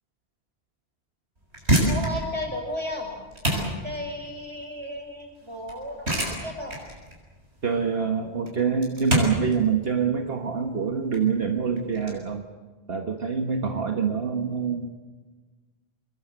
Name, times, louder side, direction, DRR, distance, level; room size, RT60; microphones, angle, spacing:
sound 1, 1.4-12.1, right 1 dB, 90° right, 7.0 m, -29 dB
voice 1, 1.8-3.1 3.8-6.8, left 1 dB, 25° right, 3 dB, 5.5 m, -34 dB
voice 2, 7.6-12.5 12.9-14.9, right 6 dB, 65° right, 4 dB, 1.6 m, -25 dB
25.5 x 21.0 x 8.0 m, 1.3 s
omnidirectional pair, 1.1 m